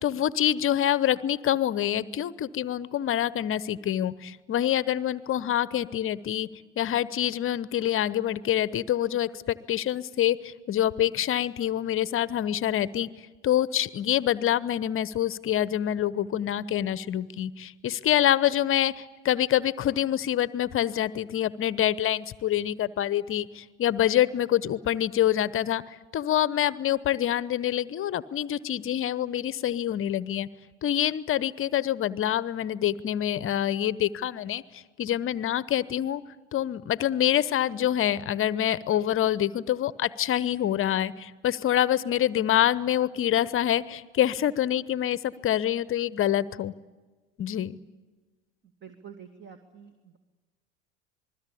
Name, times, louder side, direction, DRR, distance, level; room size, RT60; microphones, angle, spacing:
voice 1, 0.0-6.5 6.8-13.1 13.4-30.5 30.8-36.2 36.5-46.7 47.4-47.8, left 11 dB, 35° left, 17 dB, 0.9 m, -26 dB
voice 2, 48.8-50.2, right 7 dB, 30° right, 7 dB, 2.4 m, -47 dB
27.5 x 21.0 x 8.6 m, 1.3 s
hypercardioid pair, 80°, 36 cm